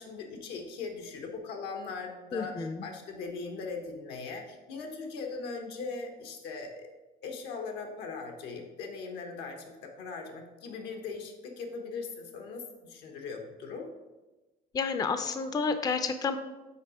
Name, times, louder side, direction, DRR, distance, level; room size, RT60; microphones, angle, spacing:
voice 1, 0.0-6.9 7.2-13.9, left 4 dB, 85° left, 3 dB, 1.1 m, -40 dB
voice 2, 2.3-2.8 14.7-16.4, left 5 dB, 20° left, 9 dB, 0.4 m, -30 dB
5.7 x 4.0 x 4.9 m, 1.1 s
cardioid pair, 110°, 17 cm